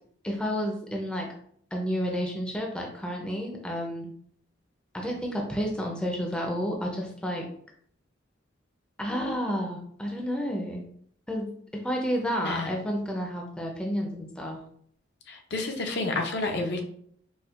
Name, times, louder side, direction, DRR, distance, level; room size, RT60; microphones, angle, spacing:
voice 1, 0.2-1.3 1.7-4.1 4.9-7.5 9.0-10.8 11.3-14.6, equal, 5° left, 0 dB, 0.4 m, -31 dB
voice 2, 15.3-16.8, left 3 dB, 60° left, 3 dB, 0.5 m, -29 dB
4.2 x 2.2 x 2.4 m, 0.62 s
head